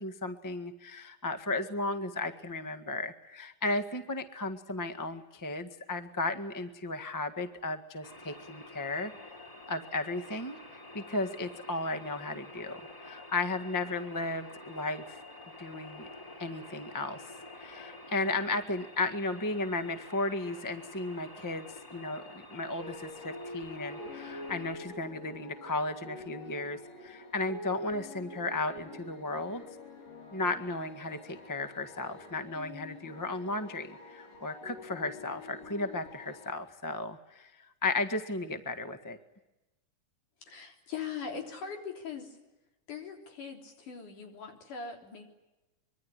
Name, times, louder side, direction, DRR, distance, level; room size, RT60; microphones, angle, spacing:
voice 1, 0.0-9.1 9.7-15.2 15.6-16.1 16.4-17.2 17.6-29.6 30.3-39.2, left 2 dB, 25° left, 8 dB, 0.4 m, -35 dB
sound 1, 8.0-24.7, left 1 dB, 5° left, 5.2 m, -49 dB
sound 2, 22.8-36.5, left 2 dB, 90° left, 6.5 m, -46 dB
voice 2, 40.4-42.4 42.9-45.3, left 6 dB, 70° left, 3 dB, 5.0 m, -41 dB
25.0 x 23.5 x 9.9 m, 1.0 s
omnidirectional pair, 3.7 m